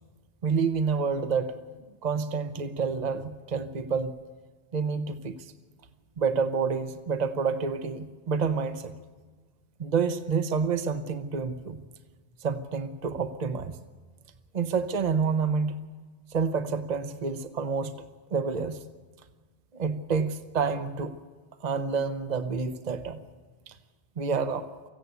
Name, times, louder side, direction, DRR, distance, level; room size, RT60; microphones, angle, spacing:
voice 1, 0.4-1.6 2.0-4.2 4.7-5.5 6.2-8.9 9.8-11.8 12.4-13.8 14.5-15.8 16.3-17.9 18.3-18.8 19.7-21.2 21.6-23.2 23.7-23.8 24.2-24.7, right 5 dB, 40° right, 9 dB, 1.0 m, -28 dB
25.0 x 15.0 x 8.1 m, 1.4 s
omnidirectional pair, 1.1 m